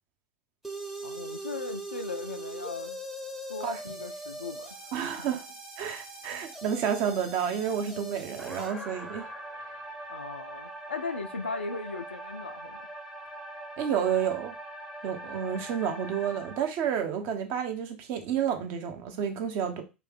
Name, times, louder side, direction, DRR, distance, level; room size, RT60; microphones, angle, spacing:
sound 1, 0.6-16.6, right 1 dB, 5° right, 0.7 m, -41 dB
voice 1, 1.0-3.0 3.5-4.9 5.2-5.3 6.3-6.4 10.1-12.8, left 3 dB, 80° left, 0.4 m, -38 dB
voice 2, 4.9-5.4 5.8-9.3 13.8-14.5 15.0-19.8, right 8 dB, 45° right, 0.8 m, -30 dB
3.1 x 3.0 x 3.5 m
figure-of-eight pair, 85°, 6 cm